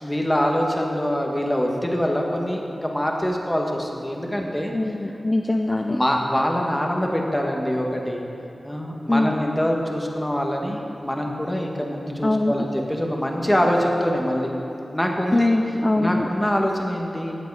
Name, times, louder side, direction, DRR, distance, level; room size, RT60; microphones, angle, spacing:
voice 1, 0.0-4.7 5.7-8.2 8.6-14.5 14.9-15.5 16.0-17.3, equal, 10° left, 0 dB, 1.7 m, -24 dB
voice 2, 4.7-6.0 9.1-9.4 12.2-12.5 15.3-16.3, left 2 dB, 30° left, 4 dB, 0.5 m, -22 dB
18.5 x 7.6 x 4.9 m, 2.8 s
wide cardioid pair, 65°, 0 cm